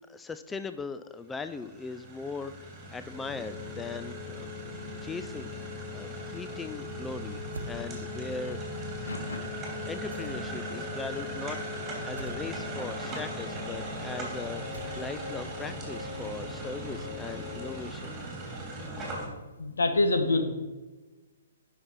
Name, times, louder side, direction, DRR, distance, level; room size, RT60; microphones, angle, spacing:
voice 1, 0.1-4.5 5.0-8.6 9.9-18.2, left 4 dB, 10° left, 10 dB, 0.3 m, -39 dB
sound 1, 1.3-19.3, right 1 dB, 15° right, 2.8 m, -39 dB
sound 2, 3.1-17.8, left 5 dB, 30° left, 1.4 m, -41 dB
sound 3, 7.5-7.8 10.1-10.6 12.2-12.4 14.7-15.3, right 2 dB, 80° right, 0.9 m, -43 dB
voice 2, 9.1-9.4 19.6-20.4, left 2 dB, 75° left, 6 dB, 1.3 m, -26 dB
9.4 x 5.8 x 4.6 m, 1.2 s
figure-of-eight pair, 125°, 0 cm